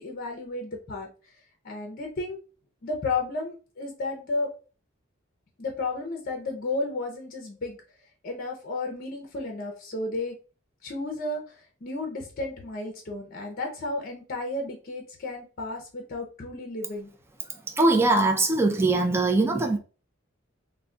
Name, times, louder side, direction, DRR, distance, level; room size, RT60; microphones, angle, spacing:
voice 1, 0.0-1.3 1.6-2.4 2.8-4.5 5.6-7.8 8.2-10.4 10.8-17.1, left 2 dB, 45° left, 0.5 m, -33 dB
voice 2, 17.7-19.8, right 2 dB, 10° right, 0.4 m, -22 dB
2.2 x 2.1 x 3.6 m
head